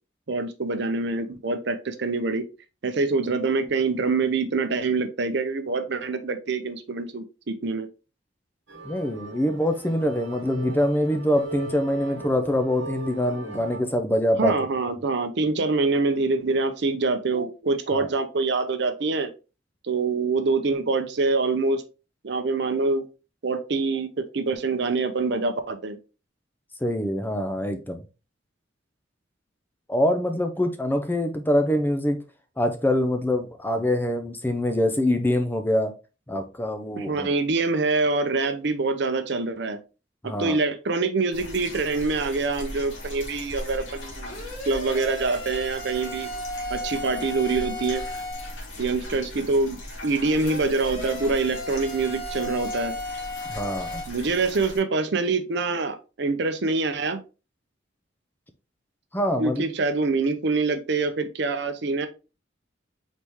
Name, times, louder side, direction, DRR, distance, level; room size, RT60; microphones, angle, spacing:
voice 1, 0.3-2.5 2.8-7.9 14.4-19.3 19.8-21.8 22.2-23.0 23.4-26.0 37.0-39.8 40.2-46.3 46.7-48.0 48.8-53.0 54.1-57.2 59.4-62.1, right 3 dB, 60° right, 0.6 m, -25 dB
sound 1, 8.7-13.8, right 2 dB, 75° right, 1.1 m, -39 dB
voice 2, 8.8-14.6 17.9-18.1 26.8-28.0 29.9-32.2 32.6-35.9 36.3-37.3 40.2-40.6 53.5-54.0 59.1-59.6, left 1 dB, 10° left, 0.4 m, -24 dB
sound 2, 41.3-54.8, left 1 dB, 80° left, 1.6 m, -39 dB
sound 3, 44.3-48.6 50.3-54.1, left 1 dB, 45° left, 2.1 m, -35 dB
4.1 x 3.2 x 3.4 m
head